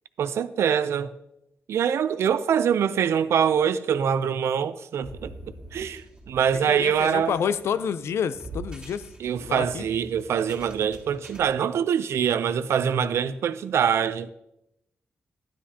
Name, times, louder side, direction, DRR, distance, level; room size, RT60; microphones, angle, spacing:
voice 1, 0.2-1.1 1.7-5.3 5.7-7.4 9.2-14.3, right 8 dB, 85° right, 0.4 m, -24 dB
sound 1, 5.0-11.5, right 2 dB, 20° right, 2.3 m, -44 dB
voice 2, 6.7-9.1 9.4-9.9, left 7 dB, 75° left, 0.4 m, -28 dB
11.5 x 10.0 x 2.8 m
wide cardioid pair, 155°, 4 cm